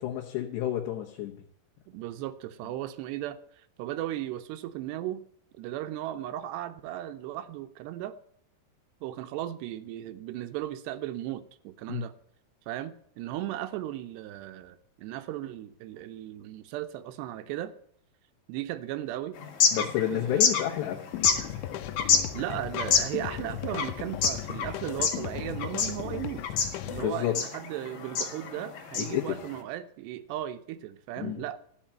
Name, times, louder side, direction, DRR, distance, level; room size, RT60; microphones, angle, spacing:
voice 1, 0.0-1.4 11.9-12.0 19.7-21.1 27.0-27.3 29.1-29.3 31.2-31.4, left 12 dB, 75° left, 3.3 m, -30 dB
voice 2, 1.9-5.3 5.6-8.2 9.0-12.1 12.7-17.7 18.5-19.4 19.8-20.5 22.3-26.4 26.8-31.6, right 13 dB, 75° right, 2.7 m, -36 dB
sound 1, 19.4-29.6, left 6 dB, 55° left, 3.4 m, -29 dB
sound 2, 21.1-27.1, left 12 dB, 90° left, 3.2 m, -37 dB
15.5 x 5.9 x 8.8 m
omnidirectional pair, 5.4 m